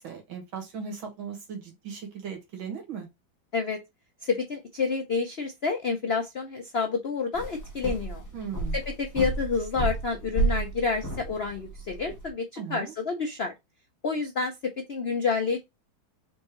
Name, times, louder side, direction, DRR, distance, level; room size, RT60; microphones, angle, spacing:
voice 1, 0.0-3.1 8.3-8.8 12.6-12.9, right 7 dB, 75° right, 2.4 m, -37 dB
voice 2, 4.2-8.2 8.7-13.5 14.0-14.5 14.9-15.6, left 4 dB, 75° left, 0.5 m, -29 dB
sound 1, 7.3-12.3, right 2 dB, 15° left, 0.8 m, -32 dB
4.4 x 3.6 x 3.0 m
omnidirectional pair, 2.2 m